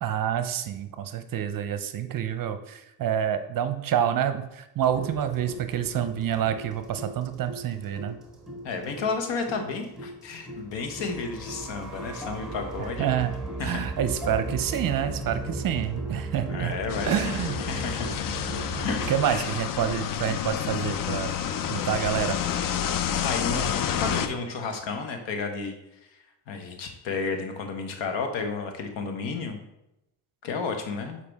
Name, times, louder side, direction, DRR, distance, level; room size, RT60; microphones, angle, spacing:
voice 1, 0.0-8.2 12.8-13.3 13.6-16.8 17.1-17.6 18.7-21.3 21.7-22.4, right 9 dB, 45° right, 9 dB, 0.7 m, -28 dB
sound 1, 4.8-19.1, right 2 dB, ahead, 1.5 m, -37 dB
voice 2, 8.6-13.1 13.6-13.8 16.5-18.1 18.8-19.5 23.2-25.8 26.1-29.6 30.4-31.2, left 4 dB, 70° left, 5 dB, 1.3 m, -32 dB
sound 2, 16.9-24.3, left 9 dB, 50° left, 0.6 m, -29 dB
6.9 x 4.7 x 3.5 m, 0.88 s
cardioid pair, 90°, 45 cm